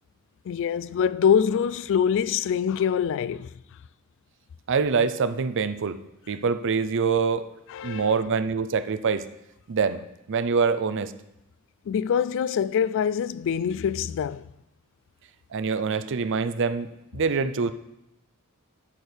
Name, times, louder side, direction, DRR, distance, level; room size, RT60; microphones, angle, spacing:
voice 1, 0.5-3.5 7.7-8.1 11.9-14.4, left 7 dB, 60° left, 0.3 m, -24 dB
voice 2, 4.7-6.0 6.3-7.5 7.8-9.2 9.7-10.0 10.3-11.1 15.5-17.7, right 5 dB, 55° right, 0.5 m, -25 dB
12.5 x 4.5 x 5.1 m
head